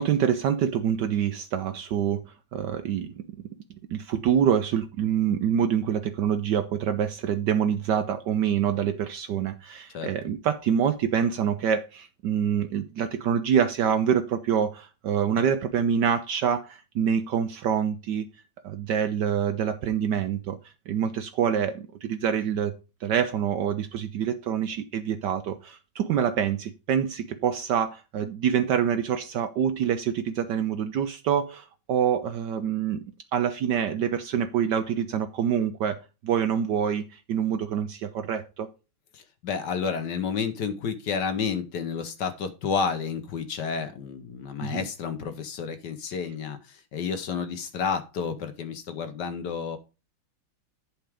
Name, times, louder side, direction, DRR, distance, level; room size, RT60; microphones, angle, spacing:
voice 1, 0.0-2.2 2.5-3.1 3.9-18.2 18.6-20.6 20.9-22.7 23.0-33.0 33.3-38.7 44.6-44.9, right 8 dB, 70° right, 1.1 m, -26 dB
voice 2, 39.1-49.8, left 6 dB, 60° left, 1.3 m, -30 dB
10.5 x 4.6 x 4.9 m
omnidirectional pair, 2.3 m